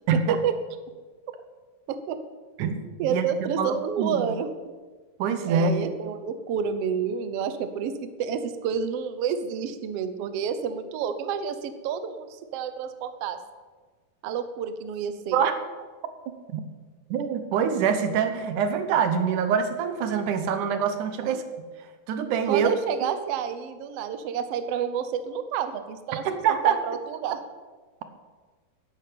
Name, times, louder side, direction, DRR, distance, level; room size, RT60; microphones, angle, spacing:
voice 1, 0.1-0.5 1.9-2.2 3.0-4.7 5.5-13.4 14.2-15.4 21.2-21.4 22.5-26.2 26.5-27.4, right 7 dB, 85° right, 10 dB, 1.3 m, -29 dB
voice 2, 3.1-4.3 5.2-5.7 15.3-15.5 16.5-16.6 17.1-21.6 22.1-22.7 26.2-26.8, right 7 dB, 70° right, 9 dB, 2.4 m, -25 dB
10.5 x 10.5 x 8.5 m, 1.4 s
omnidirectional pair, 4.0 m